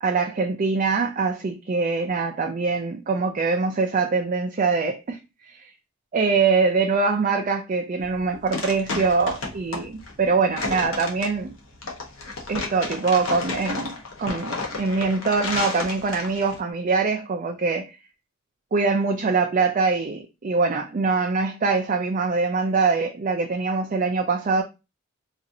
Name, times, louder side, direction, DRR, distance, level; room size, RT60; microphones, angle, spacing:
voice 1, 0.0-5.2 5.5-5.7 6.1-11.5 12.5-18.0 18.7-24.6, right 4 dB, 35° right, 0.4 m, -23 dB
sound 1, 8.0-16.6, left 3 dB, 65° left, 0.9 m, -32 dB
4.0 x 2.5 x 2.6 m
head